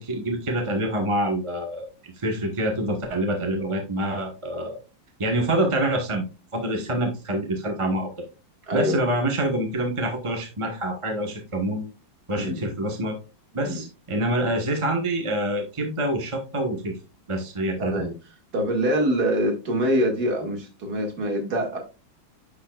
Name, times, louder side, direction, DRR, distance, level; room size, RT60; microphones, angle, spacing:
voice 1, 0.0-4.8 5.2-6.2 6.5-8.1 8.7-11.8 12.3-13.2 13.5-17.0 17.3-18.1, right 1 dB, 20° right, 3 dB, 1.0 m, -26 dB
voice 2, 8.6-9.0 12.4-12.6 13.6-13.8 17.8-18.1 18.5-21.8, equal, 50° right, 2 dB, 2.5 m, -24 dB
9.9 x 6.7 x 2.3 m, 0.29 s
omnidirectional pair, 2.1 m